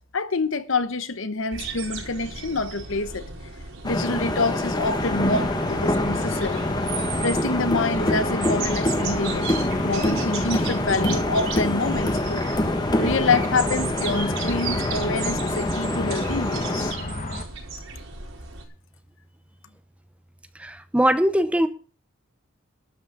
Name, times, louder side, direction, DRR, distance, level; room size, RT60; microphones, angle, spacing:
voice 1, 0.1-3.3 3.8-6.7 7.2-9.5 9.8-12.5 13.0-17.0, left 3 dB, 65° left, 1.0 m, -26 dB
sound 1, 1.5-18.7, right 4 dB, 70° right, 4.8 m, -35 dB
sound 2, 3.8-16.9, left 1 dB, 20° left, 1.2 m, -26 dB
sound 3, 5.0-17.4, left 2 dB, 35° left, 1.5 m, -34 dB
voice 2, 20.6-21.7, right 1 dB, 5° right, 0.6 m, -21 dB
12.5 x 6.2 x 8.0 m
head